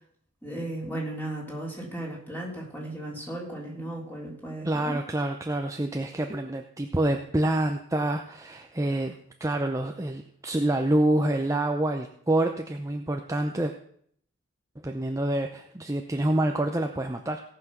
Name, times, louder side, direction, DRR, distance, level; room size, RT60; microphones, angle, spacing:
voice 1, 0.4-4.9, right 1 dB, 10° left, -3 dB, 3.5 m, -35 dB
voice 2, 4.6-13.7 14.8-17.4, right 1 dB, 15° right, 4 dB, 0.6 m, -27 dB
17.5 x 5.9 x 6.1 m, 0.65 s
head